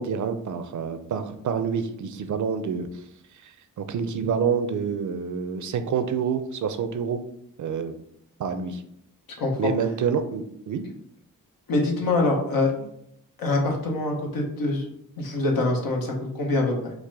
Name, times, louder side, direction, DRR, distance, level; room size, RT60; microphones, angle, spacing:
voice 1, 0.0-2.9 3.8-7.2 7.6-7.9 8.4-8.8 9.6-10.8, right 6 dB, 60° right, 9 dB, 0.5 m, -27 dB
voice 2, 9.4-9.7 11.7-12.9 13.4-14.9 15.2-16.9, left 2 dB, 85° left, 0 dB, 1.0 m, -24 dB
4.7 x 2.1 x 3.5 m, 0.73 s
cardioid pair, 65°, 34 cm